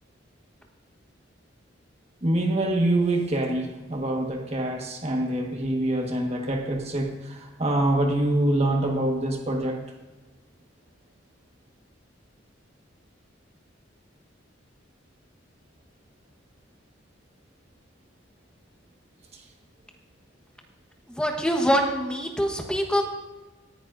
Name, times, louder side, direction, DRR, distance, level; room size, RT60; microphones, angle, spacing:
voice 1, 2.2-9.8, right 1 dB, 35° right, 1 dB, 1.5 m, -25 dB
voice 2, 21.1-23.0, equal, 5° left, 2 dB, 1.2 m, -24 dB
18.5 x 10.5 x 2.7 m, 1.2 s
head